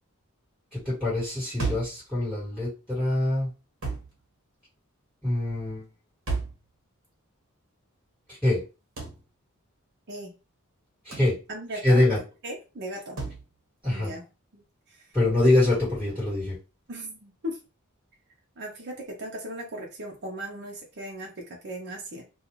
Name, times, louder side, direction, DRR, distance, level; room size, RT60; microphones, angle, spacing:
voice 1, 0.7-3.5 5.2-5.8 8.3-8.6 11.0-11.4 11.8-12.2 13.8-14.1 15.1-16.6, left 1 dB, 5° right, -8 dB, 1.4 m, -24 dB
sound 1, 1.6-2.0 3.8-4.1 6.3-6.6 9.0-9.2 11.1-11.4 13.2-13.4, right 4 dB, 70° right, 1.1 m, -31 dB
voice 2, 11.5-12.0 12.4-13.2 13.9-14.3 14.9-15.1 16.9-17.6 18.6-22.2, right 1 dB, 50° right, -1 dB, 0.7 m, -37 dB
2.4 x 2.4 x 3.0 m, 0.30 s
head